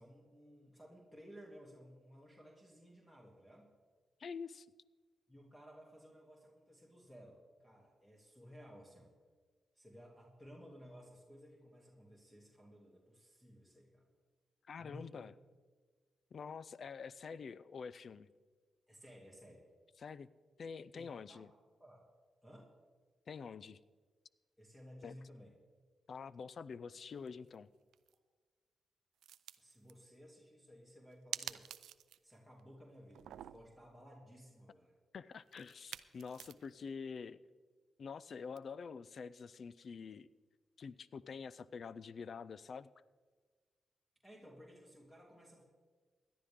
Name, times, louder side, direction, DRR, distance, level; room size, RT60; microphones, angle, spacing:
voice 1, 0.0-3.7 5.3-9.1 9.7-14.1 14.8-15.3 18.9-19.7 20.9-21.5 21.8-22.1 22.4-22.7 24.6-25.5 29.6-31.7 32.2-35.0 44.2-45.6, equal, 10° left, -2 dB, 2.7 m, -57 dB
voice 2, 4.2-4.7 14.7-15.3 16.3-18.3 20.0-20.3 20.6-21.5 23.3-23.8 25.0-25.1 26.1-27.7 35.1-37.4 38.0-40.3 40.8-42.9, left 5 dB, 60° left, 19 dB, 0.4 m, -47 dB
sound 1, 27.3-27.6 27.9-28.1 29.2-29.9 31.3-32.3 32.6-32.7 33.1-33.8 35.5-36.8 38.6-38.7, right 11 dB, 85° right, 0.4 m, -47 dB
17.5 x 11.0 x 3.7 m, 1.5 s
supercardioid pair, 55°, 0 cm